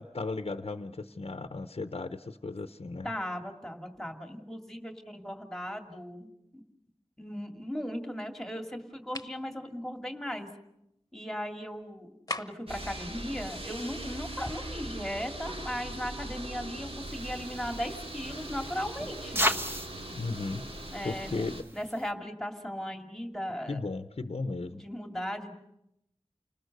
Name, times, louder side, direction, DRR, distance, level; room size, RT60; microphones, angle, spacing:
voice 1, 0.0-3.1 20.1-20.6 21.0-21.6 23.7-24.8, left 3 dB, 65° left, 9 dB, 0.8 m, -35 dB
voice 2, 3.0-6.3 6.5-6.6 7.2-10.5 11.1-12.1 12.4-19.5 20.9-23.8 24.8-25.5, equal, 5° left, 4 dB, 2.4 m, -37 dB
sound 1, 9.1-9.4 12.3-12.8, left 2 dB, 35° left, 1.1 m, -37 dB
sound 2, 12.7-21.6, right 1 dB, 65° right, 2.7 m, -40 dB
sound 3, 17.0-22.1, equal, 20° right, 1.1 m, -36 dB
29.5 x 20.0 x 6.6 m, 0.83 s
wide cardioid pair, 60°, 11 cm